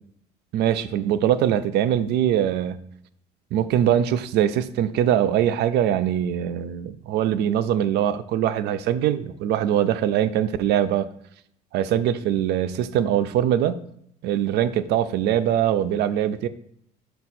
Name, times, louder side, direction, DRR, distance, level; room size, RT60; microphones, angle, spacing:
voice 1, 0.5-2.8 3.5-11.1 11.7-13.8 14.2-16.5, right 10 dB, 75° right, 14 dB, 0.5 m, -22 dB
5.4 x 4.5 x 4.1 m, 0.72 s
cardioid pair, 110°, 17 cm